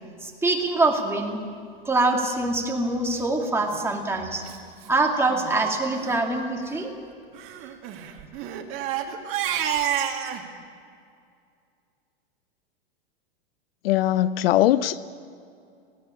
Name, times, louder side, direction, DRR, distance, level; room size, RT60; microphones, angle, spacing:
voice 1, 0.2-1.4 1.8-4.4 4.9-6.9, right 2 dB, 10° right, 2.4 m, -24 dB
Crying sobbing, 3.5-3.8 4.5-4.6 4.8-4.9 5.3-5.5 5.9-6.2 7.3-10.4, right 10 dB, 40° right, 2.0 m, -29 dB
voice 2, 13.8-15.1, left 13 dB, 65° left, 0.7 m, -21 dB
18.5 x 16.5 x 8.8 m
hypercardioid pair, 135°, 32 cm